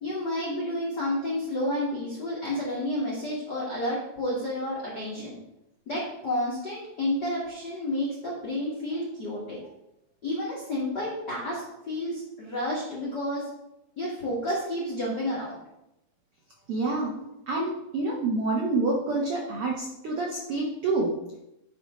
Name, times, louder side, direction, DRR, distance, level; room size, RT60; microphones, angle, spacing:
voice 1, 0.0-5.4 5.9-9.6 10.2-13.5 14.0-15.6, left 1 dB, 40° left, -6 dB, 1.5 m, -30 dB
voice 2, 16.7-17.1 17.5-21.1, right 3 dB, 75° right, -3 dB, 1.3 m, -27 dB
10.0 x 3.8 x 5.0 m, 0.87 s
omnidirectional pair, 4.3 m